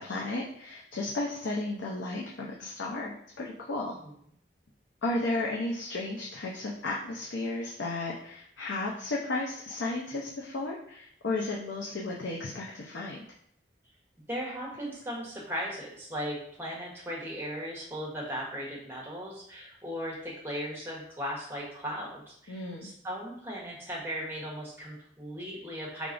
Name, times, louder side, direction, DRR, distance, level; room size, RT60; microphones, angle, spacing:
voice 1, 0.0-3.9 5.0-13.3 22.5-22.9, left 2 dB, 90° left, -3 dB, 0.6 m, -34 dB
voice 2, 14.3-26.1, equal, 10° right, -5 dB, 1.0 m, -37 dB
4.6 x 3.5 x 2.5 m, 0.69 s
head